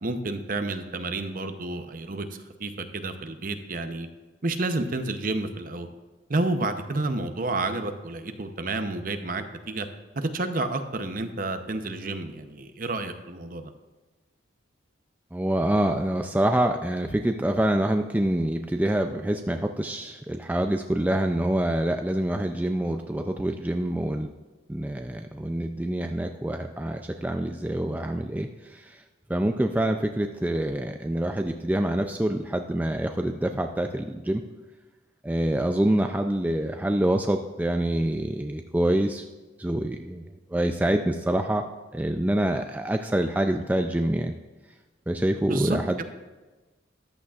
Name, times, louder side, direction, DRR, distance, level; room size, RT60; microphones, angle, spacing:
voice 1, 0.0-4.1 4.4-5.9 6.3-9.9 10.2-13.7 45.4-46.0, right 2 dB, 45° right, 7 dB, 0.7 m, -30 dB
voice 2, 15.3-24.3 24.7-29.0 29.3-34.4 35.2-39.3 39.6-41.6 41.9-44.3 45.1-46.0, right 1 dB, 10° right, 5 dB, 0.3 m, -26 dB
14.0 x 11.0 x 2.4 m, 1.2 s
head